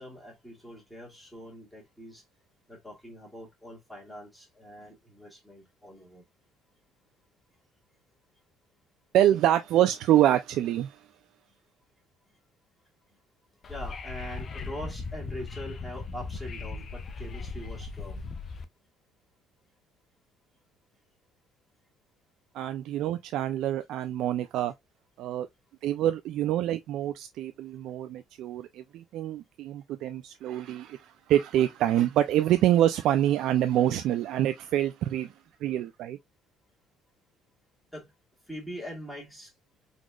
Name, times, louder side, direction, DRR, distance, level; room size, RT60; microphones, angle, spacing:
voice 1, 0.0-2.2 2.7-6.3 11.5-11.6 13.1-13.2 13.7-18.3 37.9-38.1 38.5-39.5, equal, 5° left, 1.8 m, -43 dB
voice 2, 9.1-11.0 22.5-24.7 25.2-25.5 25.8-35.3 35.6-36.2, right 12 dB, 70° right, 0.3 m, -26 dB
Wind / Subway metro underground, 13.6-18.6, left 4 dB, 40° left, 0.6 m, -38 dB
4.1 x 3.0 x 2.3 m
cardioid pair, 100°, 0 cm